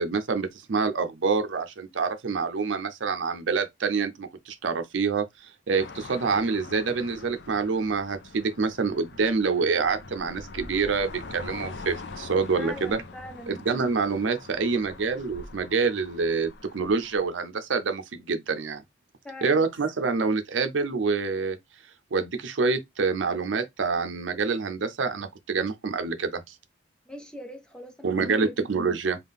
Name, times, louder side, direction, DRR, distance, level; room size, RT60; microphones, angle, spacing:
voice 1, 0.0-5.3 5.7-13.0 13.5-18.8 19.4-21.6 22.1-26.5 28.0-29.2, right 4 dB, 85° right, 0.6 m, -26 dB
sound 1, 5.8-17.3, left 3 dB, 65° left, 0.6 m, -43 dB
voice 2, 12.5-13.5 19.2-19.6 27.1-28.5, left 1 dB, 5° left, 0.7 m, -42 dB
3.7 x 2.4 x 3.5 m
head